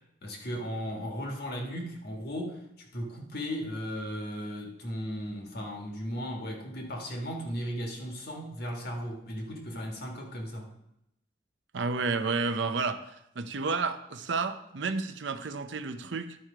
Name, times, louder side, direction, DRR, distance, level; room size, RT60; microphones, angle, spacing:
voice 1, 0.2-10.7, equal, 55° left, 1 dB, 1.6 m, -36 dB
voice 2, 11.7-16.4, right 4 dB, 70° right, 9 dB, 0.6 m, -31 dB
11.5 x 4.6 x 4.9 m, 0.82 s
head